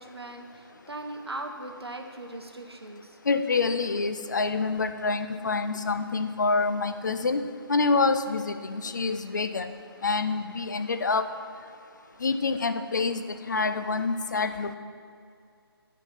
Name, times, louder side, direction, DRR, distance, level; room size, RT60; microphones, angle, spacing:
voice 1, 0.0-3.2, right 2 dB, 80° right, 5 dB, 0.9 m, -39 dB
voice 2, 3.3-9.7 10.0-11.3 12.2-14.8, left 4 dB, 45° left, 9 dB, 0.4 m, -27 dB
9.0 x 3.6 x 5.7 m, 2.3 s
figure-of-eight pair, 150°, 13 cm